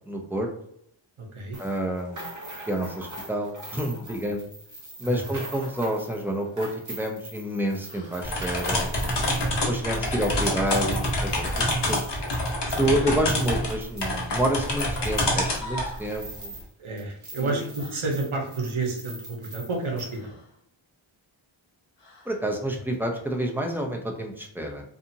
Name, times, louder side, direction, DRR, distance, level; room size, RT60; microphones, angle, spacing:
voice 1, 0.1-0.5 1.6-2.3 2.7-4.5 5.0-11.5 11.9-12.1 12.8-16.5 17.4-17.7 22.3-24.8, right 1 dB, 5° right, 1 dB, 0.5 m, -29 dB
voice 2, 1.2-1.6 5.0-5.4 9.4-9.7 12.7-13.3 16.8-20.4, right 3 dB, 75° right, 0 dB, 0.9 m, -31 dB
sound 1, 1.5-16.7 17.0-20.2, right 2 dB, 35° right, 0.8 m, -43 dB
sound 2, 7.8-8.2 10.2-10.8 12.8-13.4 15.2-16.1 17.8-18.0 20.1-20.6 22.0-22.5, equal, 90° left, 0.8 m, -42 dB
sound 3, 8.2-15.9, left 1 dB, 55° left, 0.8 m, -27 dB
2.7 x 2.5 x 2.6 m, 0.72 s
wide cardioid pair, 55°, 49 cm